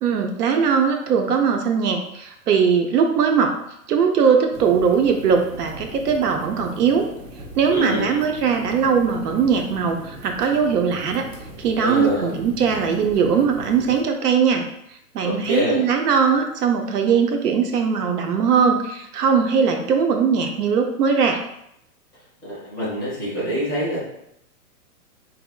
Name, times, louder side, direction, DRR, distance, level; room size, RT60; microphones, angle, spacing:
voice 1, 0.0-3.5 3.9-7.1 7.6-11.3 11.6-14.6 15.1-21.4, right 6 dB, 80° right, 4 dB, 0.7 m, -20 dB
sound 1, 4.5-14.0, right 1 dB, 55° right, 0.9 m, -39 dB
voice 2, 7.7-8.1 11.8-12.3 15.2-15.8 22.4-24.0, equal, 10° right, -12 dB, 0.7 m, -25 dB
4.1 x 2.6 x 2.3 m, 0.77 s
hypercardioid pair, 180°, 46 cm